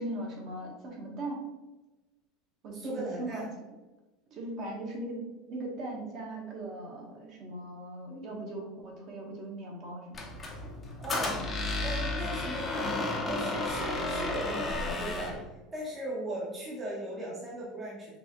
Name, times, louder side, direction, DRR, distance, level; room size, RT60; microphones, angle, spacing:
voice 1, 0.0-1.4 2.6-3.5 4.3-5.2 5.5-10.4 11.3-11.5, right 1 dB, 40° right, -1 dB, 1.2 m, -39 dB
voice 2, 2.7-3.5 11.0-11.4 11.8-18.2, right 1 dB, 15° right, -5 dB, 0.8 m, -38 dB
Squeak, 10.1-15.4, left 2 dB, 15° left, 0.7 m, -32 dB
5.2 x 3.4 x 3.0 m, 1.1 s
cardioid pair, 175°, 0 cm